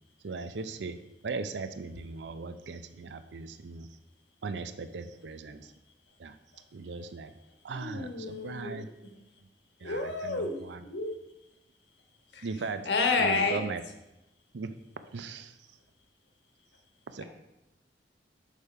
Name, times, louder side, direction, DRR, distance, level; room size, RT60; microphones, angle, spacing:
voice 1, 0.2-1.0 1.2-3.9 4.4-5.7 6.2-6.4 6.7-7.3 7.6-8.9 9.8-10.8 12.4-12.9 13.2-13.8 14.5-14.7 15.1-15.6 17.1-17.2, right 4 dB, 85° right, 11 dB, 0.5 m, -38 dB
voice 2, 7.7-8.8 9.8-11.2 12.3-12.5 12.8-13.6, left 3 dB, 80° left, 4 dB, 1.3 m, -30 dB
6.4 x 5.1 x 5.5 m, 0.96 s
head